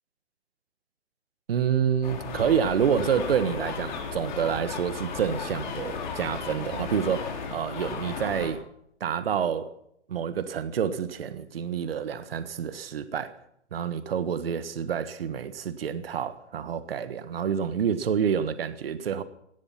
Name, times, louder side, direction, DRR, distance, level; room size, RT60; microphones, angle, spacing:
voice 1, 1.5-8.6 9.0-9.7 10.1-13.4 13.7-19.2, right 8 dB, 55° right, 1.5 m, -28 dB
sound 1, 2.0-8.5, left 5 dB, 40° left, 4.3 m, -35 dB
18.0 x 13.0 x 5.7 m
hypercardioid pair, 155°, 35 cm